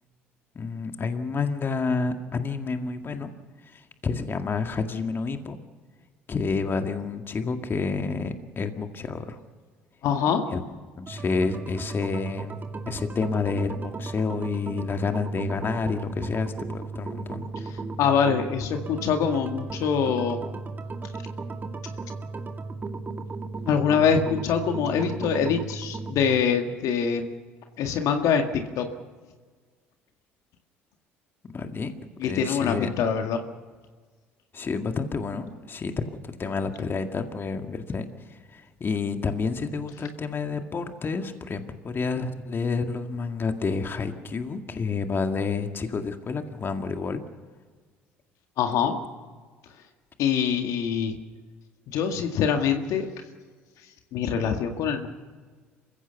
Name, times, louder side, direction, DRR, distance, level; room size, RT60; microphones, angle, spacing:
voice 1, 0.6-3.3 3.6-5.6 6.3-9.4 10.5-10.6 11.0-12.6 12.9-17.4 31.5-31.9 32.2-32.9 34.5-47.2, left 4 dB, 35° left, 6 dB, 2.0 m, -29 dB
voice 2, 10.0-10.4 17.7-20.4 23.7-27.3 27.8-28.9 32.2-33.4 48.6-49.0 50.2-51.2 51.9-53.1 54.1-55.1, left 7 dB, 65° left, 5 dB, 1.9 m, -24 dB
sound 1, 11.1-26.4, right 3 dB, 30° right, 2.0 m, -35 dB
27.5 x 16.0 x 7.1 m, 1.5 s
hypercardioid pair, 60°, 6 cm